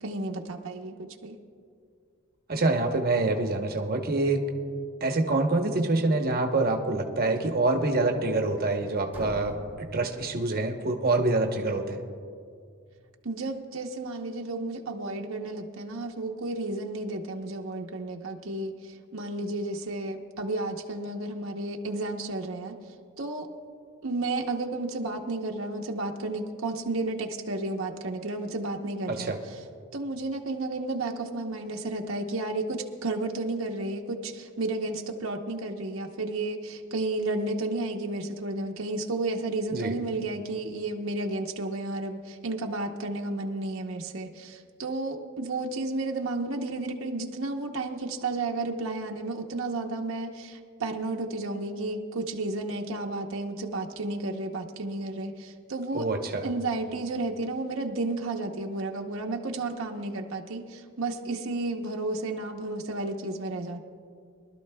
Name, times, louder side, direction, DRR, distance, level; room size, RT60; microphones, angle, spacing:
voice 1, 0.0-1.4 13.2-22.8 23.2-23.5 24.0-29.6 29.9-56.1 56.4-63.8, right 2 dB, 70° right, 2 dB, 0.8 m, -32 dB
voice 2, 2.5-4.4 5.0-12.0 29.1-29.4 39.7-39.9 55.9-56.5, right 2 dB, 45° right, 3 dB, 0.9 m, -26 dB
sound 1, 9.1-11.0, equal, 10° right, 1.1 m, -44 dB
23.5 x 12.5 x 2.2 m, 2.3 s
head